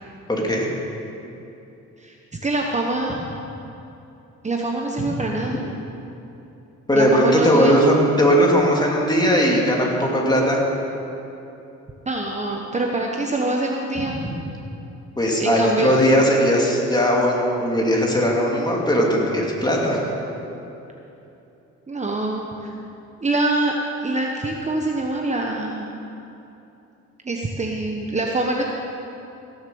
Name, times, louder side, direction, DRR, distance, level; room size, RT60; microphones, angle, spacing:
voice 1, 0.3-0.7 6.9-10.6 15.2-20.1, equal, 15° left, -2 dB, 2.8 m, -18 dB
voice 2, 2.4-3.2 4.4-5.5 6.9-7.8 12.1-14.2 15.4-15.9 21.9-22.7 23.2-23.7 24.0-25.9 27.2-28.6, right 2 dB, 25° right, 0 dB, 1.1 m, -24 dB
16.0 x 7.4 x 7.0 m, 2.9 s
cardioid pair, 90°, 30 cm